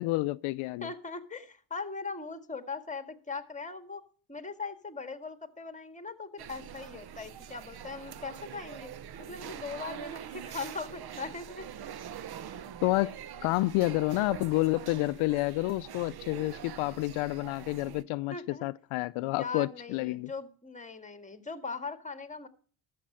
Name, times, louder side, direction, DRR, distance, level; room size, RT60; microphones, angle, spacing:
voice 1, 0.0-0.9 12.8-13.1 13.4-20.3, left 20 dB, 80° left, 0.5 m, -29 dB
voice 2, 0.8-4.0 4.3-8.9 9.2-11.7 18.3-18.7 19.2-22.5, left 4 dB, 15° left, 1.8 m, -40 dB
sound 1, 6.4-18.0, right 9 dB, 50° right, 1.0 m, -44 dB
13.0 x 7.5 x 5.5 m
supercardioid pair, 75°, 48 cm